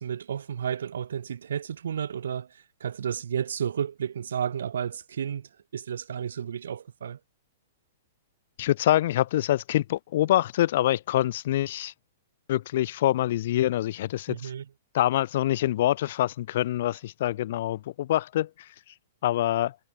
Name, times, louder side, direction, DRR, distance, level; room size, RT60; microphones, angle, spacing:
voice 1, 0.0-7.2 14.3-14.7, right 8 dB, 85° right, 2.3 m, -32 dB
voice 2, 8.6-11.9 12.5-14.4 14.9-18.7 19.2-19.8, left 13 dB, 45° left, 0.3 m, -25 dB
hypercardioid pair, 175°, 0 cm